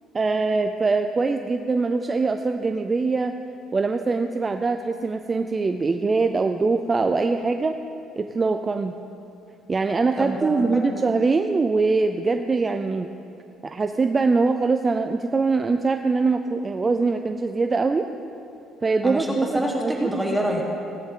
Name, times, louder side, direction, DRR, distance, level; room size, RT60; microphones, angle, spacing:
voice 1, 0.1-3.4 3.7-7.8 8.2-9.0 9.7-13.1 13.6-18.1 18.8-20.1, right 4 dB, 25° right, 7 dB, 0.4 m, -23 dB
voice 2, 10.2-11.0 19.0-19.3 19.5-20.6, equal, 5° right, 0 dB, 1.1 m, -26 dB
16.5 x 10.5 x 3.7 m, 2.7 s
cardioid pair, 130°, 0 cm